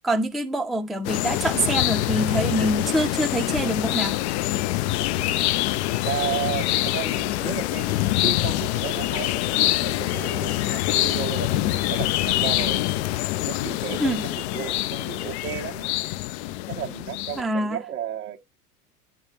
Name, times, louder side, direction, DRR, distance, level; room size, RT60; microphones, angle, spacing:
voice 1, 0.0-4.2 14.0-14.2 17.4-17.8, right 1 dB, ahead, 0.6 m, -25 dB
sound 1, 1.0-17.4, left 16 dB, 45° left, 0.5 m, -25 dB
voice 2, 5.1-5.5 6.0-12.9 13.4-15.9 16.7-18.4, right 10 dB, 65° right, 1.2 m, -34 dB
10.5 x 3.6 x 2.8 m
figure-of-eight pair, 80°, 46 cm